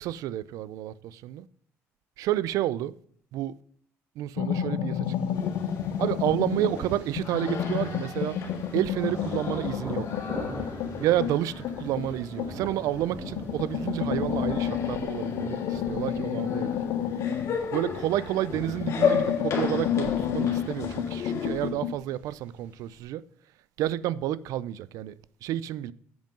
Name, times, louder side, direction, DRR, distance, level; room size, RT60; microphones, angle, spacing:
voice 1, 0.0-1.5 2.2-2.9 3.3-3.5 4.2-5.4 6.0-8.4 8.7-10.2 11.0-16.8 17.7-23.2 23.8-25.9, right 13 dB, 80° right, 0.4 m, -30 dB
sound 1, 4.4-6.8 7.1-12.8 13.2-18.3 18.6-22.0, left 9 dB, 85° left, 0.7 m, -30 dB
Thunder, 5.0-23.0, right 1 dB, 25° right, 3.4 m, -44 dB
sound 2, 5.3-21.7, left 6 dB, 55° left, 2.3 m, -35 dB
7.8 x 5.4 x 5.2 m
cardioid pair, 110°, 6 cm